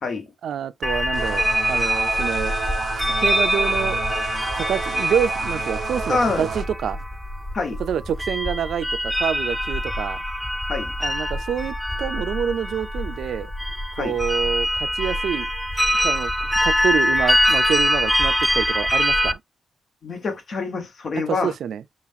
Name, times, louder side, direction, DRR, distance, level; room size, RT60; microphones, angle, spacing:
voice 1, 0.4-2.5 3.2-4.0 4.5-7.0 7.8-10.2 11.0-13.5 14.0-15.5 16.0-16.3 16.6-19.4 21.3-21.8, right 8 dB, 90° right, 0.3 m, -27 dB
sound 1, 0.8-19.3, equal, 5° left, 0.3 m, -24 dB
sound 2, 1.1-6.7, right 6 dB, 50° right, 0.6 m, -32 dB
voice 2, 6.1-6.5 7.5-7.8 10.7-10.9 13.9-14.2 20.0-21.5, left 4 dB, 45° left, 1.1 m, -26 dB
5.4 x 2.4 x 2.6 m
wide cardioid pair, 165°, 0 cm